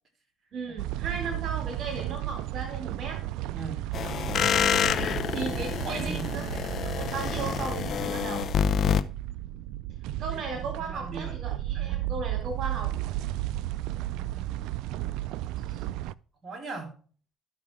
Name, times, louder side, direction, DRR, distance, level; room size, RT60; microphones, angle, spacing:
voice 1, 0.5-3.2 5.3-6.6 7.0-8.5 10.2-12.9, right 4 dB, 60° right, 3 dB, 2.2 m, -36 dB
sound 1, 0.8-16.1, right 15 dB, 80° right, 0.3 m, -34 dB
voice 2, 1.1-1.4 3.5-3.8 5.8-6.3 10.2-12.2 14.1-14.6 15.7-15.8 16.4-16.9, right 4 dB, 35° right, 3 dB, 3.9 m, -40 dB
sound 2, 3.9-9.0, left 8 dB, 50° left, 0.6 m, -27 dB
13.5 x 5.9 x 3.6 m, 0.40 s
cardioid pair, 95°, 0 cm